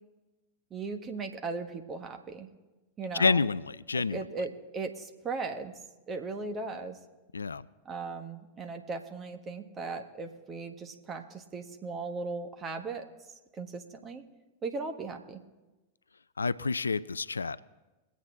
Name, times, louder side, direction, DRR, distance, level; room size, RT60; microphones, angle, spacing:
voice 1, 0.7-2.5 3.0-3.4 3.9-5.8 6.1-7.0 7.8-13.1 13.5-14.2 14.6-15.4, right 4 dB, 25° right, 5 dB, 1.4 m, -37 dB
voice 2, 3.1-4.2 7.3-7.7 16.4-17.6, left 4 dB, 75° left, 18 dB, 0.3 m, -28 dB
22.5 x 8.4 x 3.6 m, 1.1 s
figure-of-eight pair, 90°, 0 cm